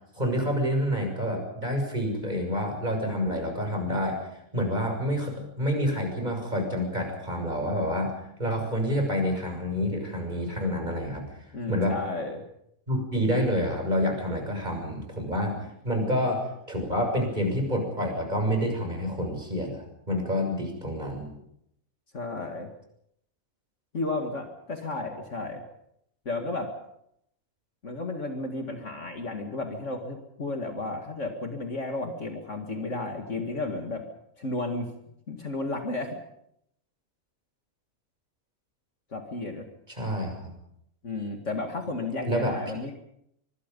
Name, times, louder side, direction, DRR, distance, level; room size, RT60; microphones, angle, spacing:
voice 1, 0.1-4.2 4.5-11.2 11.7-12.0 12.9-21.3 39.9-40.5 42.3-42.5, equal, 30° right, 3 dB, 6.9 m, -28 dB
voice 2, 11.5-12.4 22.1-22.7 23.9-25.6 26.3-26.7 27.8-34.1 34.4-34.9 35.3-36.2 39.1-39.6 41.0-42.9, left 2 dB, 55° left, 4 dB, 2.4 m, -33 dB
25.0 x 24.0 x 5.4 m, 0.76 s
omnidirectional pair, 1.5 m